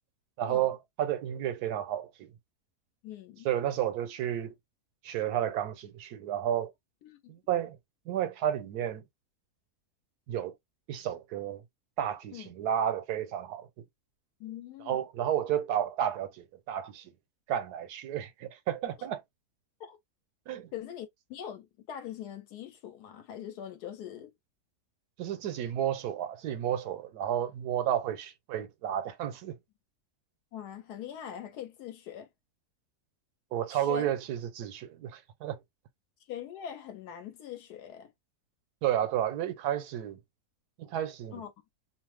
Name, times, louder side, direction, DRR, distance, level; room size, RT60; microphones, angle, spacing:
voice 1, 0.4-2.3 3.4-4.5 5.0-6.7 7.3-7.8 8.1-9.0 10.3-10.5 10.9-11.6 12.0-13.7 14.8-17.1 17.5-19.2 20.5-20.7 25.2-29.6 33.5-35.6 38.8-40.2 40.8-41.4, right 10 dB, 85° right, 1.2 m, -32 dB
voice 2, 3.0-3.5 7.0-7.3 12.3-12.5 14.4-15.0 19.8-20.0 20.7-24.3 30.5-32.3 33.7-34.1 36.3-38.1 41.3-41.5, left 9 dB, 85° left, 1.3 m, -42 dB
2.9 x 2.1 x 3.2 m
omnidirectional pair, 1.7 m